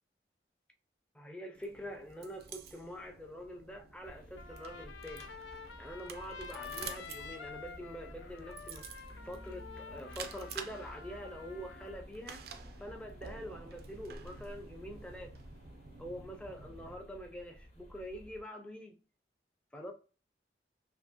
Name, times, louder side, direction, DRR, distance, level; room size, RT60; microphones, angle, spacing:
voice 1, 1.1-5.3 5.8-12.4 12.8-15.3 16.0-19.0 19.7-19.9, equal, 5° left, 0.4 m, -45 dB
sound 1, 1.6-16.9, right 5 dB, 60° right, 0.4 m, -50 dB
sound 2, 4.0-18.4, equal, 40° left, 0.8 m, -54 dB
Trumpet, 4.4-12.0, left 6 dB, 85° left, 0.4 m, -49 dB
2.8 x 2.7 x 2.2 m
head